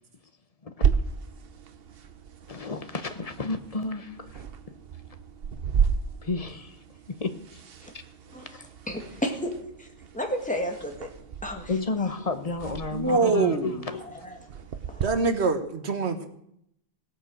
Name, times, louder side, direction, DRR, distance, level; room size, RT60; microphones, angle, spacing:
sound 1, 0.8-15.0, right 6 dB, 65° right, 1.1 m, -33 dB
voice 1, 2.5-4.4 6.2-6.8 7.2-7.3 11.7-14.0, left 3 dB, 35° left, 9 dB, 1.0 m, -31 dB
voice 2, 8.3-9.5 9.8-9.9 10.1-11.1 11.4-11.7 13.9-14.4 14.9-15.0, equal, 5° left, 2 dB, 2.0 m, -32 dB
voice 3, 12.9-13.9 15.0-16.3, right 4 dB, 80° right, 8 dB, 1.6 m, -24 dB
17.5 x 8.9 x 6.4 m, 0.74 s
omnidirectional pair, 1.1 m